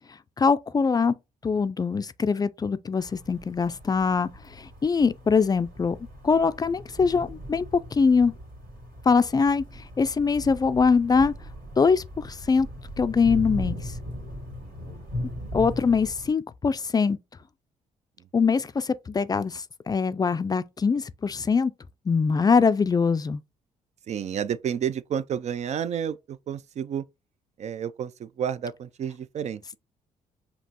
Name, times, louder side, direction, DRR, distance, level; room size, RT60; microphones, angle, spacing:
voice 1, 0.4-1.1 1.4-6.0 6.2-7.6 7.9-8.3 9.1-11.3 11.8-12.7 13.0-13.8 15.5-17.2 18.3-21.7 22.1-23.4, left 5 dB, 25° left, 0.3 m, -23 dB
sound 1, 3.0-16.3, equal, 75° right, 2.5 m, -38 dB
voice 2, 24.1-27.1 27.6-29.8, right 8 dB, 50° right, 0.4 m, -31 dB
5.2 x 2.9 x 2.8 m
cardioid pair, 80°, 15 cm